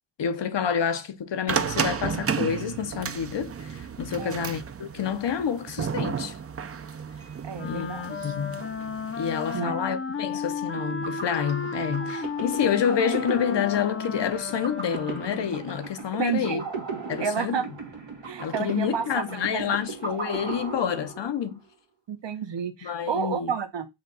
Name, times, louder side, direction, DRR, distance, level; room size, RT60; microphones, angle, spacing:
voice 1, 0.2-6.4 7.6-7.9 8.2-8.6 9.2-16.6 17.1-17.6 18.4-21.6 22.8-23.5, left 8 dB, 70° left, 0.7 m, -28 dB
sound 1, 1.5-9.6, right 6 dB, 35° right, 0.4 m, -32 dB
voice 2, 7.4-8.3 9.5-9.8 16.2-16.7 17.2-17.6 18.2-19.7 22.1-23.9, right 7 dB, 70° right, 0.9 m, -31 dB
Wind instrument woodwind instrument, 7.5-15.8, left 5 dB, 30° left, 0.5 m, -34 dB
sound 2, 10.7-21.6, right 4 dB, 90° right, 1.4 m, -37 dB
5.7 x 2.3 x 3.9 m
wide cardioid pair, 90°, 45 cm